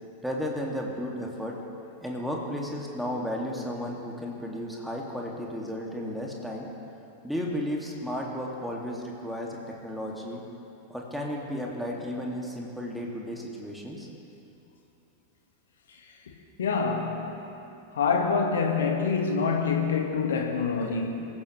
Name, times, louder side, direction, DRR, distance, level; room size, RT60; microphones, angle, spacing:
voice 1, 0.2-1.6 2.0-6.7 7.2-10.4 10.9-14.1, equal, ahead, -2 dB, 2.5 m, -33 dB
voice 2, 16.6-17.3 18.0-21.3, left 5 dB, 65° left, 2 dB, 1.9 m, -26 dB
25.0 x 15.0 x 3.4 m, 2.8 s
figure-of-eight pair, 90°, 0 cm